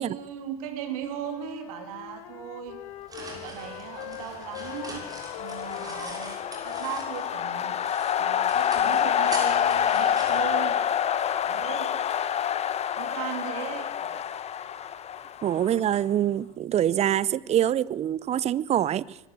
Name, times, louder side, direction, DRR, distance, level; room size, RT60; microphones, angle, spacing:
voice 1, 0.0-2.8 3.1-5.1 5.4-6.4 6.6-7.8 8.2-10.8 11.4-12.0 13.0-14.2, right 9 dB, 70° right, 3.0 m, -38 dB
Wind instrument woodwind instrument, 1.1-7.9, left 15 dB, 65° left, 1.5 m, -43 dB
sound 1, 2.7-7.4 7.7-11.3, right 2 dB, 20° right, 7.0 m, -43 dB
sound 2, 4.0-16.0, left 9 dB, 35° left, 1.1 m, -27 dB
voice 2, 15.4-19.2, right 11 dB, 35° right, 0.7 m, -25 dB
23.5 x 13.5 x 8.4 m
hypercardioid pair, 80°, 19 cm